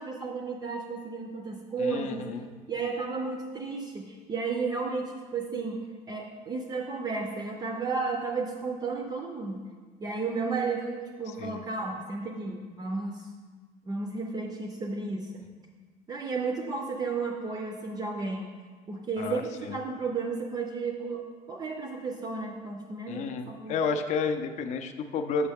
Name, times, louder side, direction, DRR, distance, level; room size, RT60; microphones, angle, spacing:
voice 1, 0.0-2.2 2.7-5.8 6.1-9.6 10.0-13.3 13.9-15.4 16.1-18.5 18.9-21.2 21.5-23.8, right 4 dB, 25° right, 1 dB, 0.4 m, -33 dB
voice 2, 1.8-2.5 11.4-11.6 19.2-19.8 23.1-25.5, left 5 dB, 45° left, 8 dB, 0.4 m, -31 dB
6.4 x 5.5 x 3.5 m, 1.5 s
cardioid pair, 165°, 16 cm